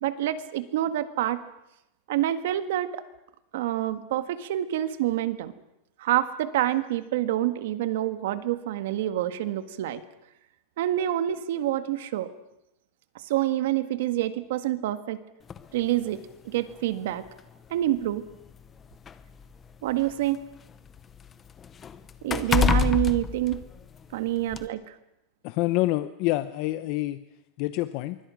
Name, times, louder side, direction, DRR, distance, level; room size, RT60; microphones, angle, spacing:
voice 1, 0.0-1.4 2.1-3.0 3.5-5.5 6.0-10.0 10.8-12.3 13.2-15.2 15.7-17.2 17.7-18.2 19.8-20.4 22.2-23.6 24.1-25.0, right 13 dB, 70° right, 11 dB, 1.6 m, -27 dB
sound 1, 15.5-15.7 16.7-16.8 17.3-17.4 18.3-20.3 20.7-24.1 24.5-24.7, left 6 dB, 15° left, 0.9 m, -28 dB
voice 2, 25.4-27.2 27.6-28.2, left 17 dB, 45° left, 12 dB, 0.8 m, -27 dB
25.5 x 23.5 x 6.3 m, 0.87 s
supercardioid pair, 175°, 0 cm